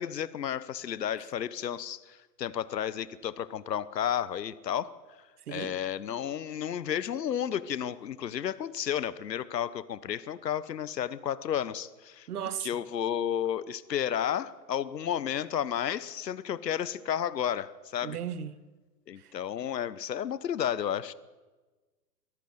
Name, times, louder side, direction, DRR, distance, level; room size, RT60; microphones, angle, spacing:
voice 1, 0.0-4.9 5.5-12.3 12.6-18.2 19.1-21.1, left 9 dB, 75° left, 1.1 m, -32 dB
voice 2, 12.3-12.7 18.0-18.6 19.2-19.3, right 9 dB, 60° right, 1.6 m, -36 dB
23.0 x 14.5 x 8.0 m
hypercardioid pair, 130°, 50 cm